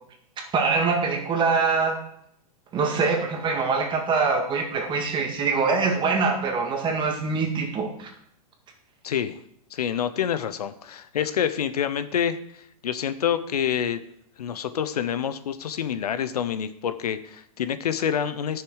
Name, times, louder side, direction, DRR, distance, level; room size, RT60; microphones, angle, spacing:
voice 1, 0.4-2.0 2.7-8.1, right 4 dB, 25° right, 2 dB, 2.0 m, -24 dB
voice 2, 9.0-9.4 9.7-14.0 14.4-18.6, left 8 dB, 85° left, 12 dB, 0.7 m, -27 dB
10.0 x 6.6 x 4.8 m, 0.73 s
hypercardioid pair, 120°, 19 cm